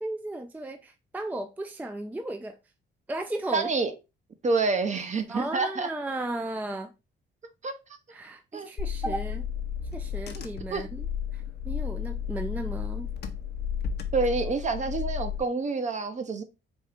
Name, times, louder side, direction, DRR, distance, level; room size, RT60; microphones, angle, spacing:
voice 1, 0.0-2.6 3.1-3.7 5.3-6.9 8.1-9.5 9.9-11.0 11.3-13.1, right 2 dB, 10° right, 0.4 m, -35 dB
voice 2, 3.5-3.9 4.4-5.9 7.6-7.7 8.5-8.7 9.0-9.1 10.3-10.4 10.7-10.9 14.1-16.4, right 4 dB, 35° right, 0.7 m, -27 dB
Car / Engine, 8.8-15.4, left 8 dB, 55° left, 0.7 m, -33 dB
4.3 x 2.4 x 3.4 m
cardioid pair, 90°, 20 cm